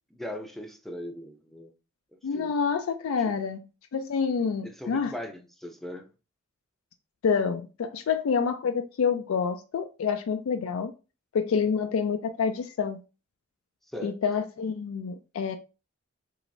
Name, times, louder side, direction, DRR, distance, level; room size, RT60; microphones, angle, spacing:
voice 1, 0.1-1.7 2.3-2.6 3.3-3.4 4.6-6.1 13.9-14.2, left 1 dB, ahead, 0.5 m, -39 dB
voice 2, 2.2-3.6 3.9-5.1 7.2-10.9 11.3-13.0 14.0-15.6, left 6 dB, 85° left, 0.4 m, -27 dB
4.7 x 3.0 x 2.6 m
head